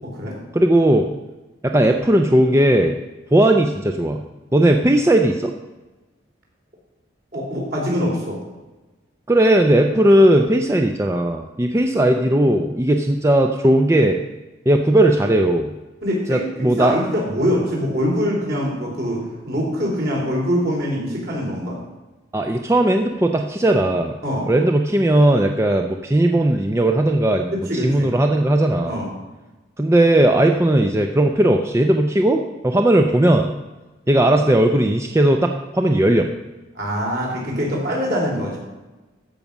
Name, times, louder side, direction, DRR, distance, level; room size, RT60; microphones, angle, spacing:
voice 1, 0.0-0.4 7.3-8.4 16.0-21.8 24.2-24.5 27.5-28.1 28.8-29.1 36.8-38.6, equal, 55° right, -2 dB, 3.7 m, -23 dB
voice 2, 0.5-1.1 1.6-3.0 3.3-4.2 4.5-5.5 9.3-14.2 14.7-15.7 16.3-17.0 22.3-24.1 24.5-28.9 29.8-33.5 34.1-36.3, right 1 dB, 15° right, 4 dB, 0.5 m, -17 dB
14.0 x 5.4 x 6.1 m, 1.1 s
head